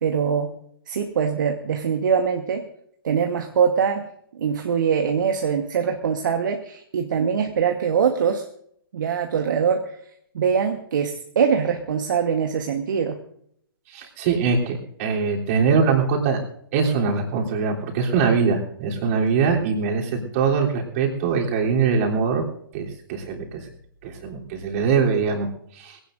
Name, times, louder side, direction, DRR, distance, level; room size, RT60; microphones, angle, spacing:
voice 1, 0.0-0.5 0.9-2.6 3.0-8.4 8.9-9.9 10.3-13.2, right 7 dB, 55° right, 5 dB, 1.3 m, -23 dB
voice 2, 13.9-16.4 16.7-22.4 22.7-23.7 24.0-26.0, right 5 dB, 40° right, 0 dB, 3.3 m, -22 dB
22.0 x 17.0 x 2.6 m, 0.70 s
figure-of-eight pair, 120°, 12 cm